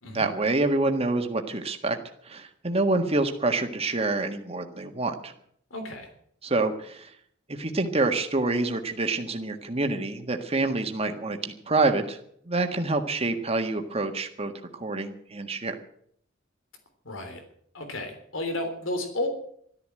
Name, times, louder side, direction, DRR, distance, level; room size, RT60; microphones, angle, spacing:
voice 1, 0.1-2.0 2.3-5.3 6.4-7.1 7.5-12.2 12.4-15.7, right 2 dB, 30° right, 5 dB, 1.7 m, -27 dB
voice 2, 5.7-6.1 17.1-17.4 17.7-19.3, left 2 dB, 85° left, 6 dB, 3.5 m, -32 dB
13.5 x 13.0 x 7.7 m, 0.65 s
head